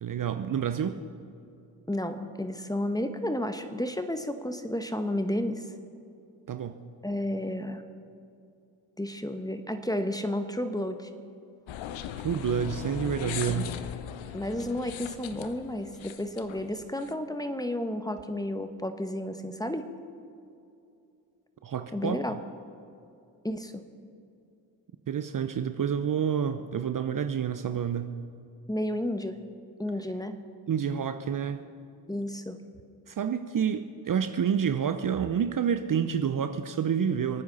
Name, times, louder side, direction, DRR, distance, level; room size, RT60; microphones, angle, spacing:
voice 1, 0.0-1.0 6.5-6.8 12.2-13.7 21.6-22.2 25.1-28.2 30.7-31.6 33.1-37.4, right 8 dB, 40° right, 9 dB, 0.8 m, -28 dB
voice 2, 1.9-5.7 7.0-7.8 9.0-11.1 13.5-13.6 14.3-19.9 21.9-22.4 23.4-23.8 28.7-29.4 29.8-30.4 32.1-32.6, left 1 dB, 5° left, 9 dB, 1.3 m, -32 dB
sound 1, 11.7-17.1, left 10 dB, 65° left, 0.9 m, -39 dB
28.5 x 9.5 x 4.2 m, 2.6 s
hypercardioid pair, 45°, 50 cm